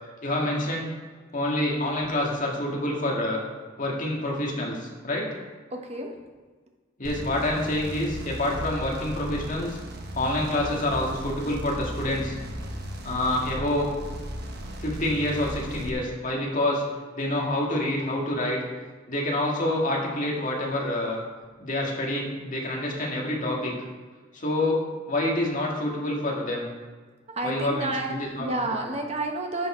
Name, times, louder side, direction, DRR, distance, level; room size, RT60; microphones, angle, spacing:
voice 1, 0.2-0.9 1.3-3.4 3.8-5.3 7.0-9.8 10.1-12.4 13.0-13.9 14.8-16.8 17.2-18.6 19.1-21.2 21.6-23.7 24.3-26.7 27.4-28.5 28.8-28.9, left 1 dB, 40° left, -2 dB, 1.9 m, -27 dB
voice 2, 5.7-6.1 27.3-29.7, right 2 dB, 35° right, 2 dB, 1.1 m, -30 dB
sound 1, 7.0-15.9, equal, 55° right, 1.1 m, -36 dB
11.0 x 6.7 x 4.4 m, 1.4 s
head